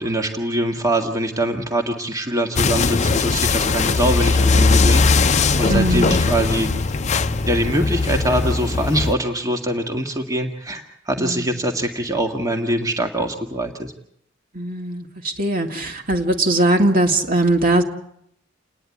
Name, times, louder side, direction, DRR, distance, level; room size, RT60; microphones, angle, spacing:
voice 1, 0.0-6.7 7.4-13.9, right 1 dB, 20° right, 3 dB, 1.7 m, -23 dB
sound 1, 2.6-9.2, left 3 dB, 40° left, 0.7 m, -19 dB
voice 2, 5.7-6.2 11.2-11.6 14.5-15.0 15.4-17.8, right 1 dB, 45° right, 3 dB, 2.1 m, -20 dB
28.5 x 10.0 x 9.6 m, 0.74 s
head